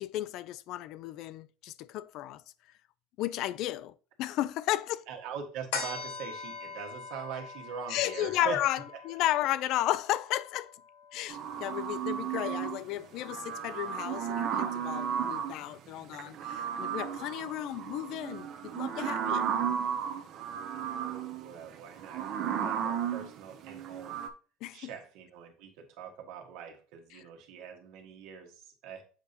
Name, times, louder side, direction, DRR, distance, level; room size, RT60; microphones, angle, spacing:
voice 1, 0.0-2.4 3.2-5.0 7.9-8.8 9.0-10.8 11.1-19.5 24.6-24.9, left 14 dB, 55° left, 0.4 m, -33 dB
voice 2, 5.1-8.6 8.9-9.0 21.4-24.2 24.7-29.0, right 7 dB, 70° right, 1.5 m, -42 dB
sound 1, 5.7-12.5 12.9-13.0, left 5 dB, 85° left, 2.7 m, -43 dB
sound 2, 11.3-12.8 13.2-15.6 16.1-24.3, right 8 dB, 50° right, 0.7 m, -34 dB
7.3 x 5.1 x 2.8 m
supercardioid pair, 130°, 0 cm